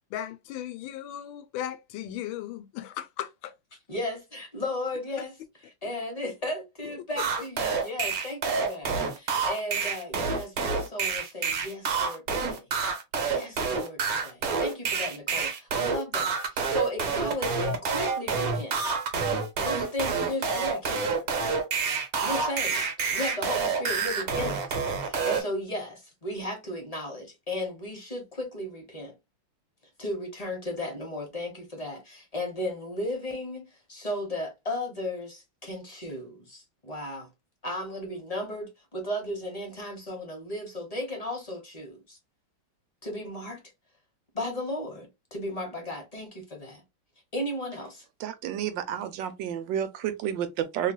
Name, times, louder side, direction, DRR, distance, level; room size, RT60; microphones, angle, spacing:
voice 1, 0.1-3.5 6.8-7.2, left 11 dB, 85° left, 1.3 m, -37 dB
voice 2, 3.9-5.4 5.6-12.7 13.2-18.8 19.6-21.2 22.2-22.8 23.1-29.1 30.0-37.3 37.6-42.2 43.0-43.6 44.3-46.8 47.3-48.0, left 1 dB, 25° left, 0.8 m, -35 dB
sound 1, 7.2-25.4, right 5 dB, 55° right, 1.2 m, -28 dB
voice 3, 48.2-50.9, right 10 dB, 75° right, 1.3 m, -31 dB
3.2 x 3.1 x 2.2 m
omnidirectional pair, 2.1 m